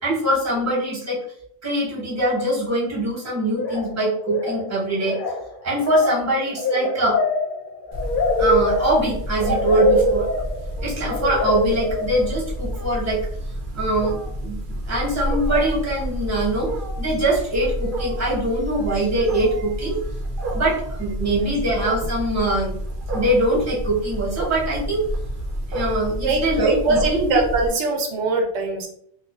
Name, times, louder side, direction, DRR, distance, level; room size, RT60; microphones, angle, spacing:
voice 1, 0.0-1.2 1.6-5.2 5.6-7.2 8.4-10.3 10.8-13.2 13.7-16.7 17.0-20.0 20.5-22.7 23.1-25.0 25.7-27.4, right 1 dB, 15° right, -6 dB, 0.8 m, -23 dB
sound 1, 3.6-4.0 4.3-4.7 5.0-12.6, left 2 dB, 60° left, 0.6 m, -24 dB
Wild animals, 7.9-27.7, equal, 60° right, 0.6 m, -29 dB
voice 2, 26.2-28.9, right 3 dB, 85° right, 1 dB, 0.9 m, -22 dB
2.4 x 2.2 x 2.3 m, 0.66 s
omnidirectional pair, 1.1 m